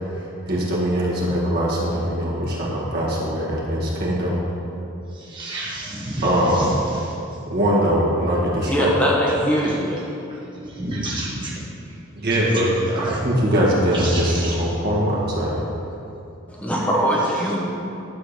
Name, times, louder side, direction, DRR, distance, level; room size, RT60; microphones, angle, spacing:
voice 1, 0.5-4.4 6.2-6.8 7.5-8.9 12.2-15.6, equal, 55° right, -5 dB, 1.9 m, -21 dB
voice 2, 5.3-6.3 10.8-11.5 13.1-13.2 13.9-14.6 17.5-17.6, right 1 dB, 25° right, -6 dB, 1.3 m, -29 dB
voice 3, 8.6-10.0 16.5-17.6, equal, 5° left, -4 dB, 1.1 m, -21 dB
11.5 x 3.9 x 6.7 m, 2.7 s
head